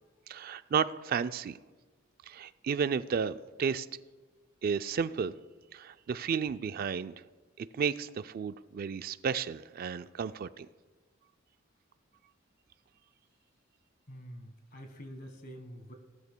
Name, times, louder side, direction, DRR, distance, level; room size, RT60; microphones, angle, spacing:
voice 1, 0.3-1.6 2.3-3.9 4.6-5.3 5.7-7.1 7.6-10.7, right 6 dB, 45° right, 13 dB, 0.3 m, -32 dB
voice 2, 14.1-16.0, equal, 45° left, 6 dB, 1.5 m, -46 dB
17.5 x 12.5 x 2.2 m, 1.3 s
head